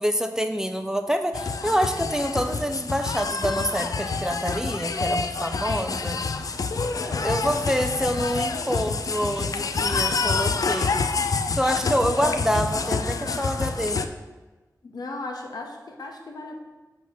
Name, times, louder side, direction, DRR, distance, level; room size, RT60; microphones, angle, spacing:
voice 1, 0.0-6.2 7.2-11.0 11.5-14.0, equal, 10° right, 6 dB, 0.4 m, -26 dB
sound 1, 1.3-14.1, left 4 dB, 60° left, 0.3 m, -27 dB
voice 2, 6.6-7.6 14.8-16.5, left 2 dB, 75° left, 2 dB, 0.8 m, -35 dB
6.3 x 2.9 x 5.7 m, 1.2 s
wide cardioid pair, 90°, 7 cm